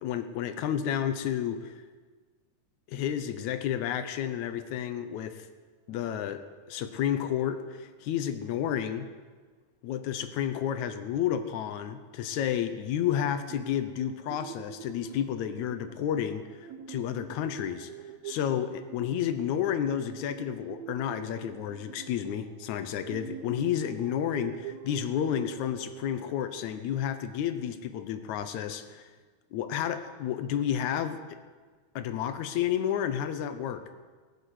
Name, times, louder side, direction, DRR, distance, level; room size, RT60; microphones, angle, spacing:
voice 1, 0.0-1.7 2.9-5.5 5.9-9.1 9.8-17.9 18.2-29.1 29.5-31.4 32.0-33.9, left 9 dB, 70° left, 10 dB, 2.1 m, -31 dB
sound 1, 13.5-27.9, right 9 dB, 75° right, 1.9 m, -46 dB
19.0 x 8.2 x 8.2 m, 1.4 s
omnidirectional pair, 3.6 m